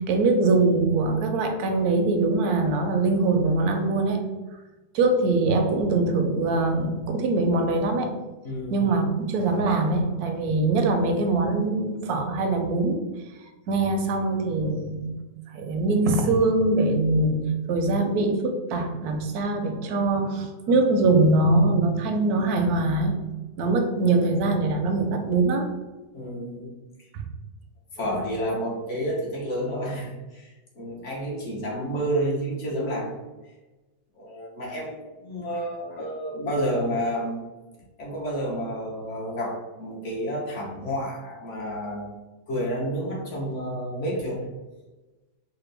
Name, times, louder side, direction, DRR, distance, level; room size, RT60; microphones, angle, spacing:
voice 1, 0.0-4.2 4.9-8.2 8.7-13.0 13.7-15.2 15.5-23.1 23.6-25.7 27.1-27.2, right 3 dB, 70° right, 5 dB, 1.0 m, -23 dB
voice 2, 8.4-8.8 26.1-27.1 28.0-33.1 34.1-37.4 38.0-42.1 42.5-44.5, equal, 50° left, -3 dB, 1.0 m, -30 dB
5.0 x 2.2 x 3.3 m, 1.2 s
omnidirectional pair, 1.9 m